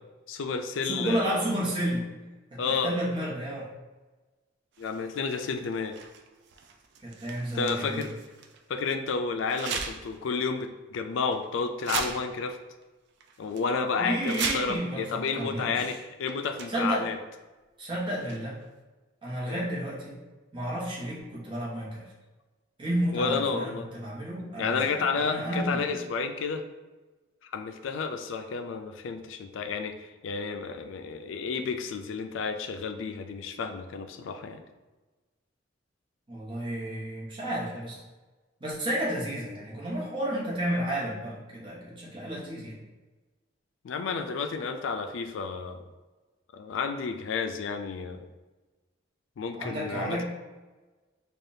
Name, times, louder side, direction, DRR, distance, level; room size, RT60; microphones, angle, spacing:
voice 1, 0.3-1.5 2.6-2.9 4.8-6.0 7.5-8.1 8.7-12.6 13.4-17.2 19.4-19.7 23.1-23.9 24.6-26.6 27.5-34.6 43.8-45.8 46.5-48.3 49.4-50.2, left 5 dB, 70° left, 6 dB, 0.4 m, -31 dB
voice 2, 0.8-2.1 2.5-3.7 7.0-8.1 14.0-16.0 16.7-17.0 17.8-18.6 19.2-20.2 20.5-22.0 22.8-25.9 36.3-38.0 38.6-42.8 49.5-50.2, right 1 dB, 25° right, -7 dB, 1.0 m, -32 dB
sound 1, 4.7-8.6 9.5-10.2 10.6-10.7 11.3-11.5 11.8-12.8 13.2-13.6 14.1-14.9 15.8-16.0 16.2-17.0 18.1-18.7, right 6 dB, 60° right, 0.4 m, -38 dB
4.9 x 2.3 x 2.7 m, 1.2 s
head